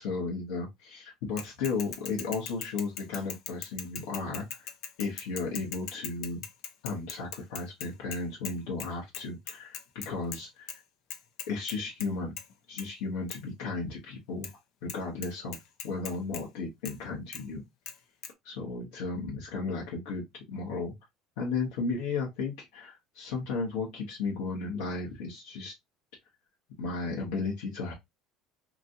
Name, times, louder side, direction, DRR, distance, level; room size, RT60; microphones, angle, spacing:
voice 1, 0.0-4.7 5.0-6.4 6.8-10.8 11.5-12.4 12.7-14.5 14.8-15.6 15.8-17.6 18.4-20.9 21.4-25.7 26.8-27.9, left 4 dB, 80° left, 1.0 m, -34 dB
Bicycle / Mechanisms, 1.4-8.5 8.8-8.9 9.1-10.4 10.7-10.8 11.1-12.1 12.4-12.5 12.8-12.9 13.3-13.4 14.4-14.5 14.9-15.0 15.2-16.4 16.8-16.9 17.3-17.4 17.9-18.0 18.2-18.3, left 8 dB, 65° left, 0.6 m, -40 dB
2.9 x 2.5 x 2.6 m
supercardioid pair, 90°, 0 cm